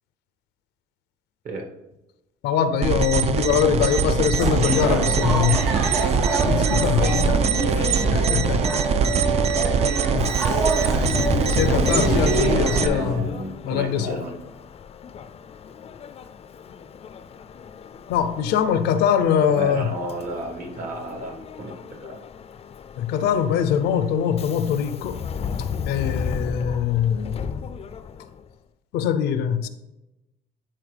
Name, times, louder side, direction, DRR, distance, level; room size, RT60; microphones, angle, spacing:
voice 1, 2.4-5.7 6.3-9.0 10.1-10.9 11.5-13.2 13.6-14.2 18.1-19.9 23.0-25.2 25.6-27.5 28.9-29.7, left 8 dB, 85° left, 0.6 m, -23 dB
sound 1, 2.8-12.9, right 6 dB, 40° right, 0.4 m, -23 dB
sound 2, 4.4-13.2, right 2 dB, 80° right, 2.4 m, -25 dB
voice 2, 9.0-9.5 12.6-14.3 19.5-22.2, right 1 dB, 55° right, 1.7 m, -33 dB
Subway metro underground, 10.1-28.5, left 6 dB, 35° left, 0.4 m, -34 dB
11.0 x 4.4 x 3.4 m
cardioid pair, 110°, 17 cm